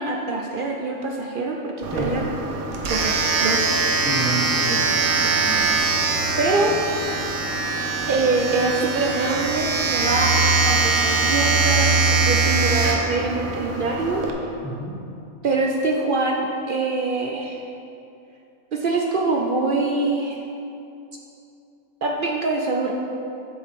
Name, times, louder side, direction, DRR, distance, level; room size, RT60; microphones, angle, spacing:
voice 1, 0.0-2.3 2.8-4.0 6.4-6.7 8.1-14.2 15.4-17.6 18.7-20.4 22.0-22.9, right 3 dB, 60° right, 0 dB, 0.5 m, -24 dB
Domestic sounds home sounds, 1.8-14.3, right 4 dB, 85° right, 1.2 m, -22 dB
voice 2, 4.0-4.9 5.2-5.8 14.6-14.9, right 1 dB, 10° left, -8 dB, 0.7 m, -30 dB
7.8 x 7.2 x 3.5 m, 2.7 s
omnidirectional pair, 1.5 m